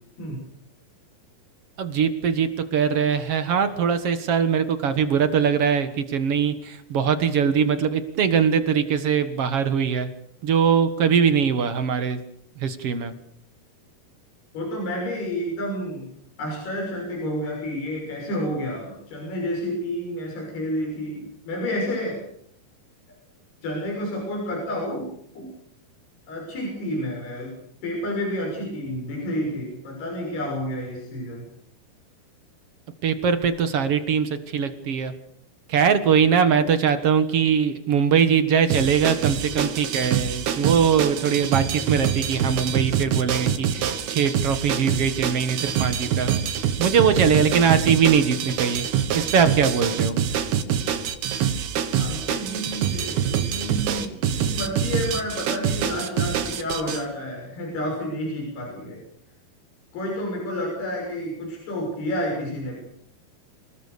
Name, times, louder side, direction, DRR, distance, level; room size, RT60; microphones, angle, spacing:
voice 1, 1.8-10.1 10.4-12.2 12.6-13.1 33.0-35.1 35.7-46.3 46.8-48.8 49.1-50.2, right 7 dB, 55° right, 10 dB, 1.8 m, -21 dB
voice 2, 14.5-16.1 16.4-22.2 23.6-25.1 25.3-25.5 26.3-31.5 52.0-59.0 59.9-62.8, left 1 dB, 85° left, -1 dB, 8.4 m, -30 dB
sound 1, 38.7-57.0, right 8 dB, 80° right, 3.7 m, -25 dB
28.0 x 19.0 x 6.8 m, 0.70 s
omnidirectional pair, 4.5 m